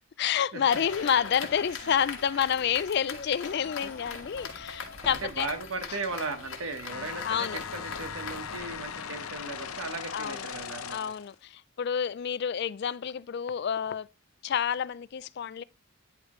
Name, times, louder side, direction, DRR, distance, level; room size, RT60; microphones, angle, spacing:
voice 1, 0.2-5.5 5.9-6.0 7.2-7.6 10.1-10.5 10.9-14.1 14.4-15.6, left 8 dB, 50° left, 0.3 m, -29 dB
sound 1, 0.7-8.6, left 5 dB, 65° left, 1.5 m, -41 dB
Sliding door, 3.4-5.9 7.6-10.7, left 1 dB, 10° left, 1.5 m, -52 dB
voice 2, 5.1-11.1, right 3 dB, 70° right, 1.1 m, -37 dB
sound 2, 6.9-11.3, left 7 dB, 80° left, 0.7 m, -39 dB
9.8 x 4.9 x 3.1 m
head